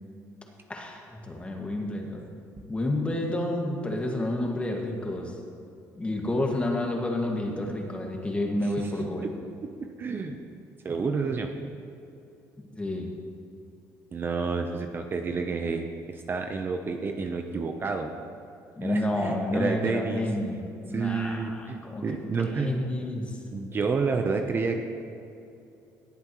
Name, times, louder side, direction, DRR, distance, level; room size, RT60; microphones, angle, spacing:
voice 1, 0.7-2.2 2.7-5.4 6.0-9.3 12.7-13.1 18.8-23.4, left 1 dB, 20° left, 1 dB, 1.8 m, -30 dB
voice 2, 9.8-10.4 10.8-11.5 14.1-18.1 18.8-20.2 20.9-22.7 23.5-24.8, right 4 dB, 35° right, 5 dB, 0.7 m, -29 dB
18.5 x 8.0 x 3.1 m, 2.7 s
cardioid pair, 100°, 7 cm